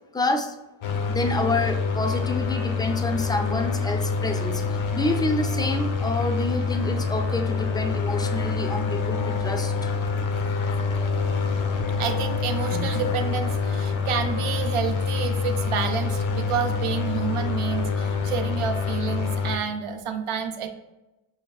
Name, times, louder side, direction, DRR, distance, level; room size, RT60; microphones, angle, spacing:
voice 1, 0.1-0.6 1.1-4.6 4.9-9.9, left 2 dB, 10° left, 4 dB, 0.3 m, -28 dB
sound 1, 0.8-19.6, left 4 dB, 70° left, 0.6 m, -26 dB
voice 2, 12.0-20.7, right 7 dB, 80° right, 6 dB, 0.6 m, -29 dB
6.0 x 2.3 x 2.3 m, 1.0 s
cardioid pair, 55°, 50 cm